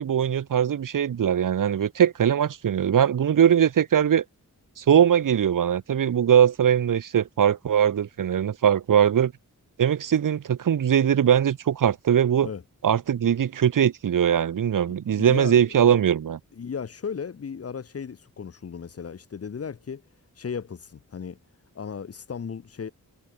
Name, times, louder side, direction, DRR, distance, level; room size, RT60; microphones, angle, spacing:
voice 1, 0.0-4.2 4.8-9.3 9.8-12.5 12.8-16.4, right 9 dB, 65° right, 0.6 m, -21 dB
voice 2, 14.8-16.0 16.5-20.0 20.3-21.4 21.7-22.9, left 6 dB, 45° left, 0.6 m, -36 dB
wide cardioid pair, 80°, 35 cm